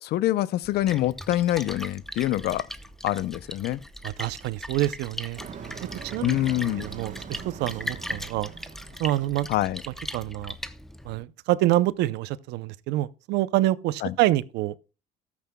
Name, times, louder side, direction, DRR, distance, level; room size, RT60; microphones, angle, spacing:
voice 1, 0.0-2.7 3.0-3.8 6.2-6.8 9.5-9.8 14.0-14.1, left 14 dB, 75° left, 0.6 m, -25 dB
Splash splatter, 0.6-11.2, equal, ahead, 0.7 m, -39 dB
voice 2, 4.0-5.4 6.1-6.4 6.8-8.5 9.0-9.5 10.1-10.5 11.0-14.7, right 15 dB, 85° right, 0.6 m, -26 dB
Motor vehicle (road), 5.4-10.3, right 7 dB, 50° right, 1.1 m, -42 dB
13.5 x 13.0 x 2.2 m
cardioid pair, 110°, 17 cm